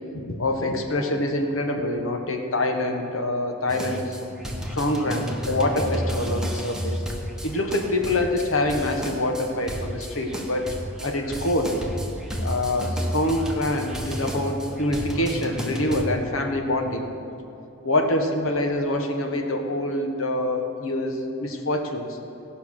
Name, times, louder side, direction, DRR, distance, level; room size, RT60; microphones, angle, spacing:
voice 1, 0.1-4.2 4.7-7.0 7.4-10.7 11.0-11.7 12.4-17.1 17.8-22.2, left 1 dB, 70° left, 3 dB, 1.2 m, -25 dB
sound 1, 3.7-16.0, equal, 5° right, 1.0 m, -32 dB
17.0 x 5.7 x 6.3 m, 2.7 s
head